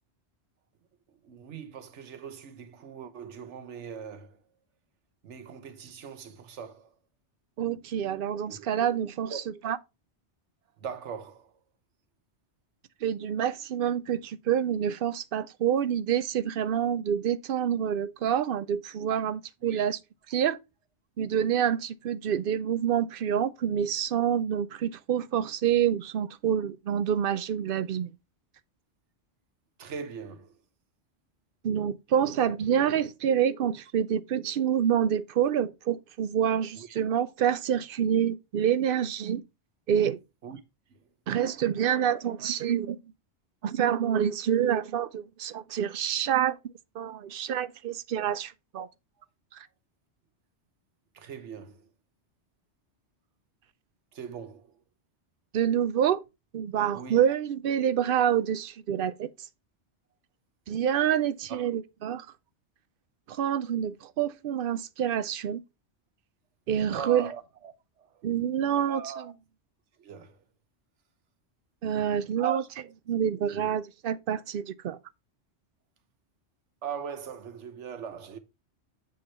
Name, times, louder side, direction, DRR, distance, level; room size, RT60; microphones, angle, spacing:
voice 1, 1.2-4.4 5.2-6.9 8.5-8.7 9.2-9.4 10.8-11.5 19.6-19.8 29.8-30.6 36.8-37.0 40.4-40.6 40.9-41.1 51.1-51.8 54.1-54.7 56.9-57.2 61.5-61.7 66.9-68.2 68.8-69.3 70.0-70.4 72.4-72.7 73.3-73.7 76.8-78.4, right 8 dB, 85° right, 1.2 m, -40 dB
voice 2, 7.6-9.8 13.0-20.0 20.3-20.6 21.2-28.1 31.6-39.4 39.9-40.2 41.3-43.0 43.6-46.6 46.9-48.9 49.5-49.7 55.5-56.2 56.5-59.3 60.7-62.3 63.3-65.6 66.7-67.3 68.2-69.3 71.8-72.6 73.1-75.0, right 9 dB, 60° right, 0.7 m, -27 dB
7.8 x 3.8 x 4.3 m
omnidirectional pair, 1.2 m